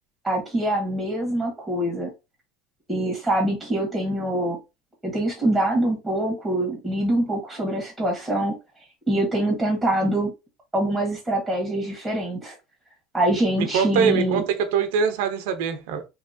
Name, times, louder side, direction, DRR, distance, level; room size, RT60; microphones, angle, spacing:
voice 1, 0.2-2.1 2.9-4.6 5.0-8.6 9.1-10.3 10.7-12.5 13.1-14.4, right 1 dB, ahead, 1.2 m, -24 dB
voice 2, 13.6-16.1, right 7 dB, 80° right, 0.7 m, -23 dB
3.0 x 2.8 x 2.6 m
cardioid pair, 145°, 0 cm